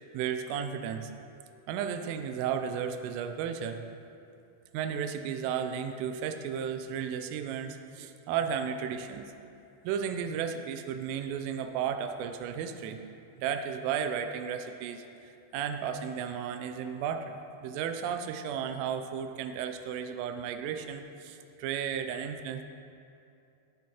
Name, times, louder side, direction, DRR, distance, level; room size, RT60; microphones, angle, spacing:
voice 1, 0.1-1.1 1.7-3.9 4.7-9.3 9.8-13.0 13.4-15.0 15.5-22.6, right 7 dB, 90° right, 7 dB, 3.2 m, -34 dB
18.0 x 9.2 x 3.0 m, 2.6 s
omnidirectional pair, 5.7 m